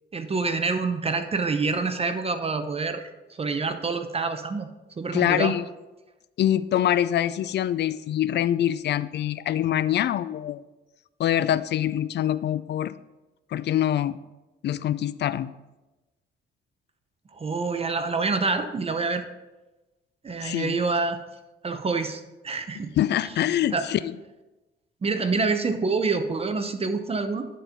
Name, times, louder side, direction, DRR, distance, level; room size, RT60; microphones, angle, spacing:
voice 1, 0.1-3.1 3.4-4.7 5.0-5.6 17.3-19.2 20.2-21.2 21.6-22.9 23.7-23.8 25.0-27.5, right 4 dB, 30° right, 9 dB, 0.7 m, -27 dB
voice 2, 5.1-5.6 6.4-10.6 11.2-12.9 13.5-14.2 14.6-15.5 20.4-20.8 23.0-24.1, left 11 dB, 60° left, 16 dB, 0.4 m, -24 dB
10.0 x 4.4 x 5.1 m, 1.1 s
cardioid pair, 90°, 20 cm